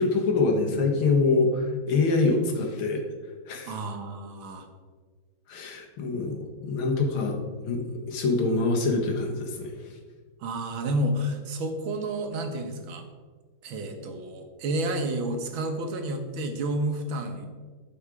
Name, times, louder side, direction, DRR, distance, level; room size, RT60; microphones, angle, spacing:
voice 1, 0.0-3.0 3.5-3.7 5.5-7.4 7.6-9.7, left 3 dB, 85° left, 2 dB, 2.1 m, -25 dB
voice 2, 3.7-4.7 10.4-13.1 13.6-17.5, right 1 dB, 75° right, 5 dB, 1.9 m, -30 dB
11.5 x 5.4 x 4.8 m, 1.5 s
omnidirectional pair, 2.2 m